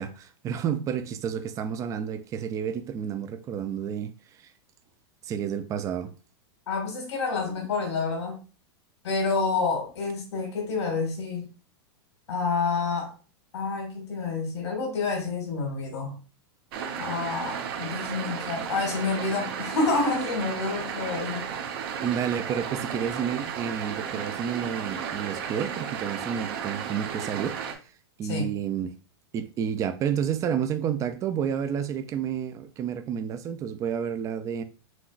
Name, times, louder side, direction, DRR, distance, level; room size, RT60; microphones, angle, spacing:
voice 1, 0.0-4.1 4.4-4.5 5.2-6.1 22.0-27.6 28.2-29.0 29.3-34.6, right 8 dB, 25° right, 0.4 m, -30 dB
voice 2, 6.7-8.4 9.0-11.5 12.3-13.1 13.5-16.2 17.0-21.5 28.2-28.5, left 4 dB, 85° left, 1.9 m, -28 dB
sound 1, 16.7-27.7, right 7 dB, 60° right, 1.0 m, -34 dB
6.1 x 2.9 x 2.5 m
hypercardioid pair, 135°, 14 cm